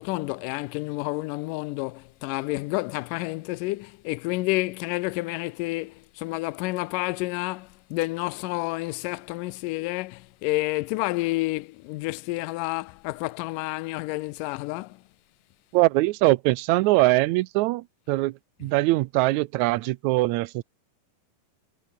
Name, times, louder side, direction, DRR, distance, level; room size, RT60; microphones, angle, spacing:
voice 1, 0.0-15.0, left 22 dB, 80° left, 2.1 m, -30 dB
voice 2, 15.7-18.3 18.6-20.6, right 19 dB, 85° right, 1.6 m, -22 dB
omnidirectional pair, 4.0 m